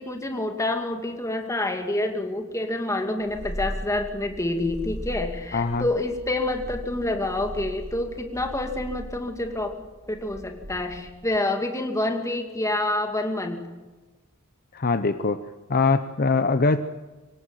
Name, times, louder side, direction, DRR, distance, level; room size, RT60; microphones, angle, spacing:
voice 1, 0.0-9.7 10.0-13.7, left 2 dB, 15° left, 5 dB, 2.5 m, -27 dB
Purr, 3.2-11.3, equal, 90° right, 4.0 m, -38 dB
voice 2, 5.5-5.8 14.7-15.4 15.7-16.8, left 3 dB, 45° left, 11 dB, 0.8 m, -22 dB
24.5 x 17.5 x 9.2 m, 1.2 s
head